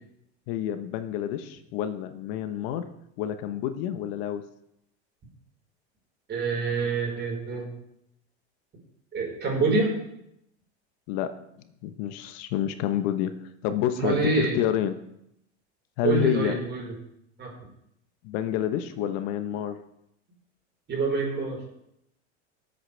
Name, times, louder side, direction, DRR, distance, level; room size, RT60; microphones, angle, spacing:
voice 1, 0.5-2.8 3.2-4.4 11.1-11.3 11.8-13.3 13.6-15.0 16.0-16.6 18.2-19.8, left 10 dB, 60° left, 10 dB, 1.1 m, -28 dB
voice 2, 6.3-7.7 9.1-10.0 14.0-14.6 16.0-16.9 17.4-17.5 20.9-21.6, right 3 dB, 30° right, -1 dB, 4.8 m, -26 dB
19.5 x 8.2 x 3.4 m, 0.77 s
hypercardioid pair, 100°, 34 cm